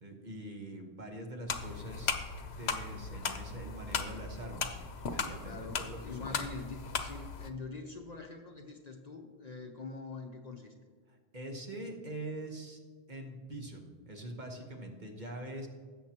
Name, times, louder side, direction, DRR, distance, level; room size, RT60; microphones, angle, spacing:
voice 1, 0.0-2.1 2.6-4.8 5.1-6.4 11.1-12.8 13.1-15.7, right 1 dB, 45° right, 2 dB, 1.3 m, -44 dB
sound 1, 1.5-7.5, left 5 dB, 70° left, 1.0 m, -37 dB
voice 2, 5.4-10.7, left 3 dB, 40° left, 2 dB, 0.8 m, -44 dB
17.5 x 7.4 x 2.9 m, 1.5 s
omnidirectional pair, 1.1 m